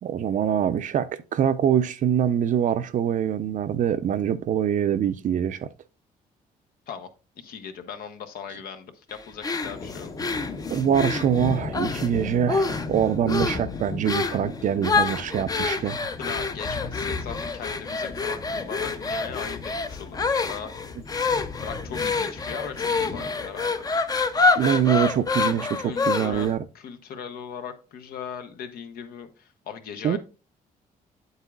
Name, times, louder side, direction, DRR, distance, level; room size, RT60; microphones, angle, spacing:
voice 1, 0.0-5.7 10.7-16.0 24.5-26.6 30.0-30.2, right 9 dB, 55° right, 0.5 m, -24 dB
voice 2, 7.4-10.1 15.2-15.3 15.6-15.7 16.2-20.7 21.6-23.7 25.7-30.2, left 7 dB, 80° left, 1.0 m, -38 dB
sound 1, 9.4-12.1 12.5-13.0 13.3-13.6 14.1-14.4 14.8-26.5, left 4 dB, 25° left, 0.6 m, -27 dB
sound 2, 9.6-25.7, left 4 dB, 40° left, 0.9 m, -37 dB
8.3 x 8.1 x 2.4 m
cardioid pair, 105°, 15 cm